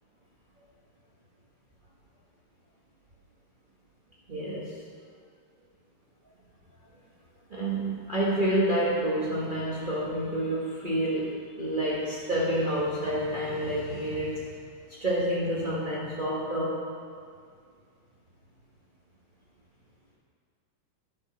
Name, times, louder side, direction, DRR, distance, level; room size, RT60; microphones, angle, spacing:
voice 1, 4.3-4.7 7.5-14.4 14.9-16.8, right 1 dB, 75° right, -6 dB, 0.4 m, -28 dB
11.0 x 7.9 x 5.6 m, 2.1 s
omnidirectional pair, 3.5 m